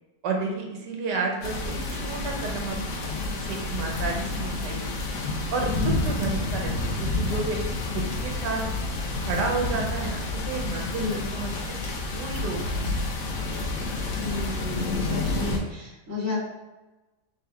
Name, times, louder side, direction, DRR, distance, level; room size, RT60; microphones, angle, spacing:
voice 1, 0.2-5.0 5.5-8.6 9.2-11.8 12.1-12.9 13.2-13.4, right 4 dB, 85° right, 1 dB, 1.4 m, -31 dB
sound 1, 1.4-15.6, left 2 dB, 85° left, 1.4 m, -29 dB
voice 2, 5.7-6.1 11.0-11.3 14.2-16.4, left 4 dB, 10° right, -7 dB, 1.1 m, -32 dB
3.6 x 3.6 x 3.3 m, 1.1 s
omnidirectional pair, 1.8 m